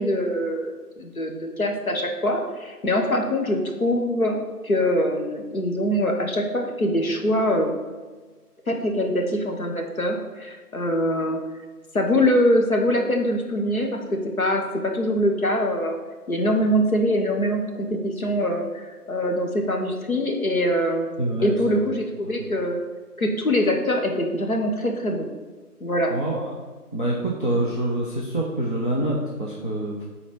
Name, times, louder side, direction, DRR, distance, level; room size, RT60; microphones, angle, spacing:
voice 1, 0.0-4.4 4.6-7.8 8.7-11.4 11.9-16.0 16.3-21.1 21.4-22.8 23.2-25.3 25.8-26.1, equal, 60° left, 2 dB, 1.4 m, -23 dB
voice 2, 21.2-21.8 22.2-22.5 26.1-26.6 26.9-30.0, right 1 dB, 35° left, -3 dB, 0.7 m, -26 dB
7.4 x 4.2 x 5.1 m, 1.3 s
figure-of-eight pair, 165°, 47 cm